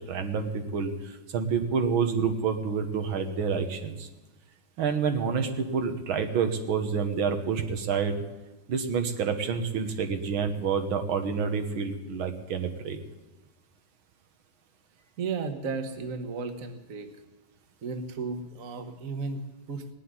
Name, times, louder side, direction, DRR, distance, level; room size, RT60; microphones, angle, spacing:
voice 1, 0.1-4.1 4.8-8.2 8.7-13.0, right 6 dB, 85° right, 6 dB, 2.0 m, -28 dB
voice 2, 15.2-17.1 17.8-19.9, right 4 dB, 45° right, 7 dB, 1.5 m, -34 dB
19.0 x 7.6 x 9.6 m, 1.1 s
omnidirectional pair, 2.2 m